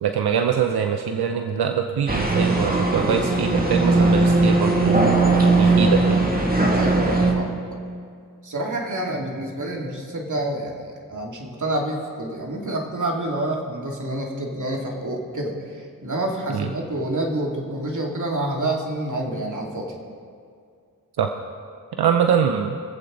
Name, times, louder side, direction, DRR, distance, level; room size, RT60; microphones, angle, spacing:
voice 1, 0.0-5.1 5.4-6.2 16.5-16.7 21.2-21.3 22.0-22.8, right 7 dB, 90° right, 5 dB, 0.7 m, -23 dB
sound 1, 2.1-7.3, right 2 dB, 25° right, 2.2 m, -19 dB
voice 2, 6.8-7.5 8.4-19.9, right 1 dB, 55° right, -1 dB, 2.6 m, -28 dB
24.0 x 7.9 x 3.9 m, 2.2 s
cardioid pair, 45°, 37 cm